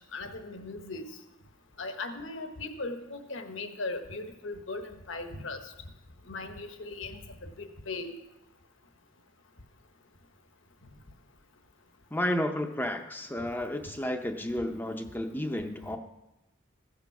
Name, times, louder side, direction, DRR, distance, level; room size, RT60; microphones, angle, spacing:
voice 1, 0.1-1.1 1.8-5.6 6.3-7.2 7.6-8.1, left 3 dB, 70° left, 7 dB, 1.2 m, -38 dB
voice 2, 12.1-16.0, left 1 dB, 10° left, 5 dB, 0.5 m, -32 dB
15.0 x 6.8 x 5.9 m, 0.95 s
head